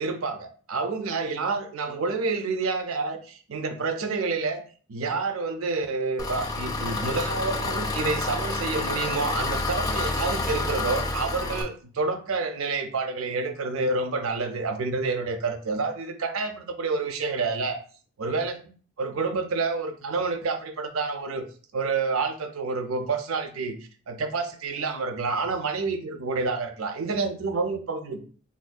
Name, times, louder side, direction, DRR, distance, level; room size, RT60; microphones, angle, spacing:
voice 1, 0.0-4.6 4.9-17.8 18.2-18.6 19.0-21.5 21.7-23.8 24.1-28.2, right 4 dB, 75° right, 7 dB, 0.5 m, -28 dB
Engine, 6.2-11.6, left 2 dB, 20° left, 0.4 m, -29 dB
4.0 x 2.6 x 2.2 m, 0.41 s
head